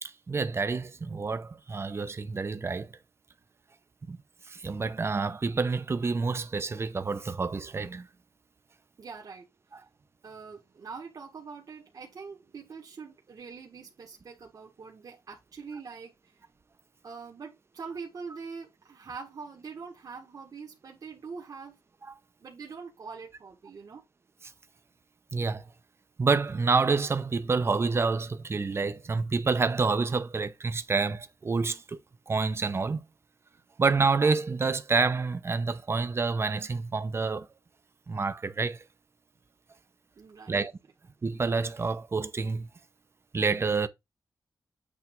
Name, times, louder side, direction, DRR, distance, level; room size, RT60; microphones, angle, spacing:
voice 1, 0.0-2.9 4.1-4.2 4.5-8.1 25.3-25.7 26.2-32.0 32.3-33.0 33.8-37.5 38.1-38.8 40.5-40.7 41.2-42.7 43.3-43.9, right 4 dB, 35° right, 0.8 m, -28 dB
voice 2, 9.0-9.5 10.2-16.4 17.0-21.8 22.4-24.0 40.2-40.6, right 5 dB, 60° right, 1.8 m, -43 dB
8.5 x 3.4 x 4.6 m
wide cardioid pair, 125°, 7 cm